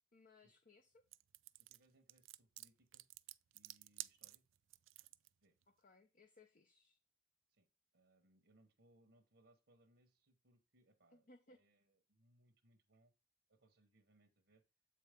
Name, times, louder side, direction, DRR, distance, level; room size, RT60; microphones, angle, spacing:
voice 1, 0.1-1.0 5.8-7.0 11.1-11.6, left 3 dB, 45° left, 0.8 m, -66 dB
sound 1, 1.1-5.3, right 17 dB, 90° right, 0.4 m, -52 dB
voice 2, 1.7-3.1 3.5-4.4 5.4-5.5 7.5-7.7 7.9-13.1 13.5-14.6, right 1 dB, 65° right, 1.2 m, -73 dB
8.2 x 4.8 x 3.7 m
head